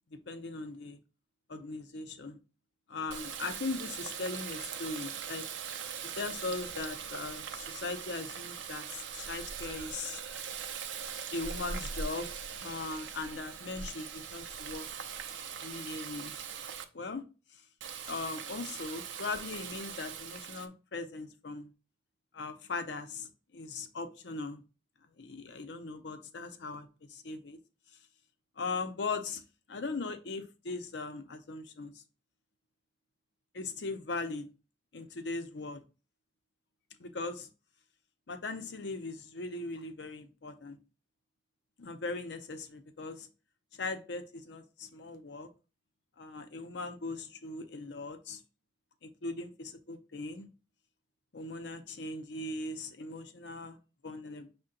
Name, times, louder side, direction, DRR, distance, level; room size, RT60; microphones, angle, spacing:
voice 1, 0.1-1.0 1.5-2.4 2.9-5.5 6.2-10.2 11.3-12.3 12.6-14.9 15.6-16.3 16.9-17.2 17.5-17.6 18.1-21.7 22.3-24.6 25.2-27.6 28.6-29.4 29.7-32.0 33.5-34.5 34.9-35.8 37.0-37.5 38.3-40.8 41.8-43.3 43.7-45.5 46.2-48.4 49.0-50.5 51.3-53.8 54.0-54.5, left 3 dB, 70° left, 7 dB, 0.6 m, -39 dB
Water tap faucet, 3.1-16.8 17.8-20.7, right 7 dB, 85° right, 0.5 m, -41 dB
5.4 x 2.2 x 3.8 m, 0.32 s
head